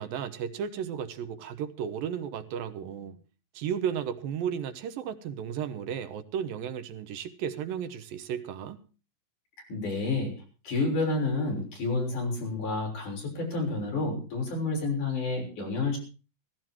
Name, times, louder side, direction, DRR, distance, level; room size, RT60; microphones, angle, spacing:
voice 1, 0.0-3.2 3.5-8.8, right 8 dB, 80° right, 2.9 m, -34 dB
voice 2, 9.7-10.3 10.6-16.0, left 3 dB, 60° left, 8.0 m, -29 dB
17.0 x 16.0 x 4.5 m
omnidirectional pair, 4.1 m